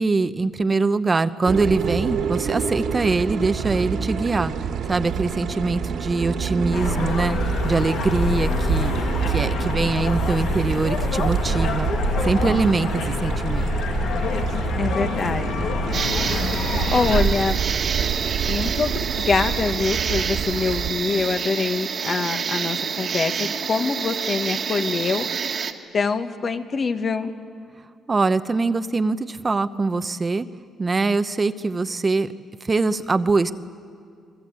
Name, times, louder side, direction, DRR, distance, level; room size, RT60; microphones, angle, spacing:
voice 1, 0.0-7.4 7.6-8.9 9.3-11.9 12.2-13.7 28.1-30.5 30.8-32.3 32.6-33.5, right 3 dB, 30° right, 11 dB, 0.8 m, -23 dB
water flow between rolls, 1.4-20.9, right 7 dB, 75° right, 2.2 m, -27 dB
sound 1, 6.7-17.2, left 4 dB, 75° left, 2.3 m, -26 dB
voice 2, 14.8-15.7 16.9-17.6 18.5-25.3 25.9-27.3, left 4 dB, 45° left, 7 dB, 1.6 m, -24 dB
sound 2, 15.9-25.7, right 6 dB, 55° right, 1.7 m, -28 dB
28.0 x 20.5 x 8.5 m, 2.2 s
cardioid pair, 90°, 0 cm